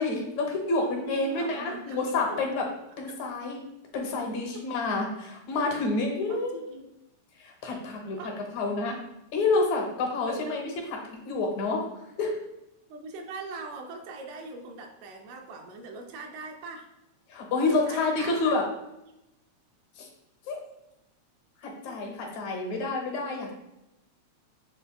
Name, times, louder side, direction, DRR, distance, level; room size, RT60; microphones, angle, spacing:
voice 1, 0.0-2.6 3.0-3.6 3.9-6.6 7.4-8.2 8.5-9.0 9.3-11.0 11.3-11.9 12.2-12.4 17.3-18.6 20.0-20.1 20.5-20.6 21.6-23.5, left 3 dB, 75° left, 1 dB, 2.0 m, -28 dB
voice 2, 0.8-2.4 6.3-6.9 8.2-8.3 10.3-10.4 12.9-16.9 17.7-18.5 21.9-22.0, right 3 dB, 80° right, 3 dB, 1.9 m, -41 dB
7.2 x 3.2 x 2.2 m, 0.90 s
omnidirectional pair, 3.3 m